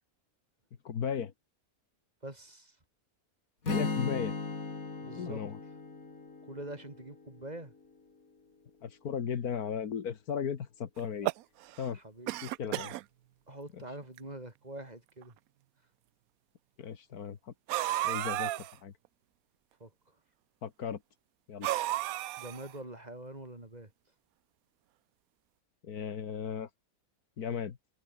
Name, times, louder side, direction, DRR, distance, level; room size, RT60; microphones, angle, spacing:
voice 1, 0.9-1.3 3.7-4.3 5.2-5.6 8.8-11.3 11.8-12.0 12.4-12.9 13.7-13.8 16.8-17.4 18.0-18.9 20.6-21.0 21.5-21.7 25.8-26.7 27.4-27.8, left 7 dB, 85° left, 1.9 m, -36 dB
voice 2, 2.2-2.8 5.0-5.4 6.5-7.7 11.9-12.4 13.5-15.3 19.8-19.9 22.4-23.9, right 1 dB, 25° right, 3.3 m, -44 dB
Strum, 3.6-7.8, left 3 dB, 65° left, 3.7 m, -37 dB
sound 1, 11.0-11.9 12.3-13.0 13.8-13.9 14.2-14.3 15.2-15.3 17.7-18.7 21.6-22.8, right 15 dB, 75° right, 1.0 m, -33 dB
omnidirectional pair, 1.6 m